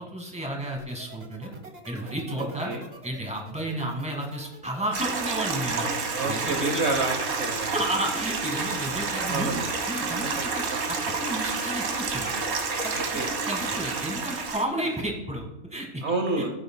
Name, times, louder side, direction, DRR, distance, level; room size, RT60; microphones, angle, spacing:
voice 1, 0.0-1.5 1.9-2.7 3.0-5.9 6.2-6.8 7.7-9.5 9.9-12.3 12.8-16.0 16.4-16.5, right 1 dB, 5° right, -1 dB, 1.8 m, -32 dB
sound 1, 0.8-14.5, right 3 dB, 35° right, 1.1 m, -46 dB
voice 2, 2.4-2.8 6.1-7.7 9.2-9.7 12.9-13.3 16.0-16.5, right 3 dB, 60° right, 3 dB, 1.2 m, -29 dB
Stream, 4.9-14.6, right 4 dB, 80° right, 1.5 m, -29 dB
15.5 x 8.6 x 2.2 m, 0.92 s
omnidirectional pair, 1.3 m